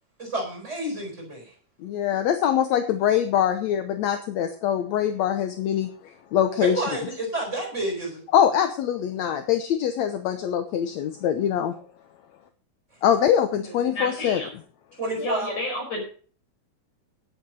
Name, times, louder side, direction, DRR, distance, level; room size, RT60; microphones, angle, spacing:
voice 1, 0.2-1.5 6.6-8.2 15.0-15.5, right 2 dB, 20° right, 1 dB, 4.7 m, -29 dB
voice 2, 1.8-6.9 8.3-11.7 13.0-14.4, left 9 dB, 70° left, 8 dB, 2.0 m, -23 dB
voice 3, 13.6-14.5 15.2-16.0, left 1 dB, 55° left, 1 dB, 6.4 m, -31 dB
11.0 x 8.7 x 6.4 m, 0.42 s
omnidirectional pair, 3.6 m